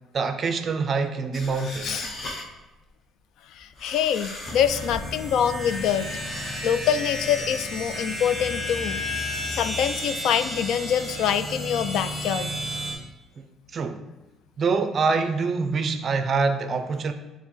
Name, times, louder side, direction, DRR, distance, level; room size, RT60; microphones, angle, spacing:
voice 1, 0.1-2.1 13.7-14.0 14.6-17.1, right 4 dB, 30° right, 8 dB, 0.4 m, -25 dB
sound 1, 1.3-2.6 3.5-5.1 5.6-6.7, left 2 dB, 35° left, 0.8 m, -38 dB
voice 2, 3.5-6.1 6.6-9.0 9.5-12.6, left 9 dB, 65° left, 12 dB, 0.3 m, -25 dB
sound 2, 4.4-12.9, left 1 dB, 10° left, 2.2 m, -32 dB
10.5 x 3.9 x 3.1 m, 1.1 s
cardioid pair, 170°, 0 cm